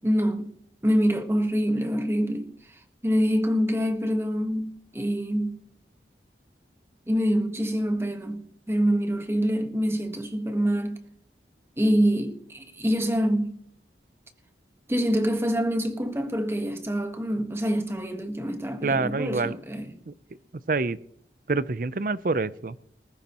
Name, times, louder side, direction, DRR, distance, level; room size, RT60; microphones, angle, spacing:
voice 1, 0.0-0.5 0.8-5.6 7.1-11.0 11.8-13.6 14.9-20.0, equal, 15° right, 1.3 m, -26 dB
voice 2, 18.8-19.6 20.1-20.2 20.7-21.0 21.5-22.8, right 3 dB, 50° right, 0.5 m, -26 dB
20.0 x 15.0 x 3.0 m
head